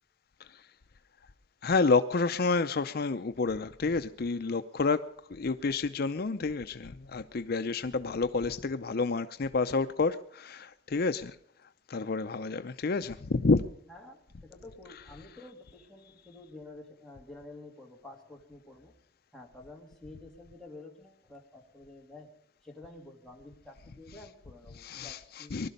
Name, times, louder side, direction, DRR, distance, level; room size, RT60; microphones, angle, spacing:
voice 1, 1.6-5.0 5.3-11.4 11.9-13.6 24.7-25.7, left 4 dB, 55° left, 0.6 m, -29 dB
voice 2, 13.9-18.9 19.3-22.3 22.6-25.6, left 2 dB, ahead, 2.4 m, -50 dB
20.5 x 12.0 x 5.3 m
head